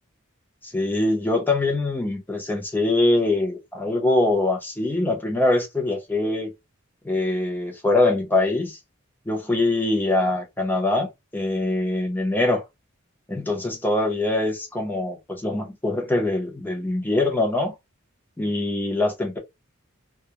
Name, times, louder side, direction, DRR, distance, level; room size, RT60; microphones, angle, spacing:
voice 1, 0.6-6.5 7.0-8.8 9.3-12.6 13.3-17.7 18.4-19.4, left 2 dB, 10° left, 0.7 m, -23 dB
2.3 x 2.1 x 2.8 m
head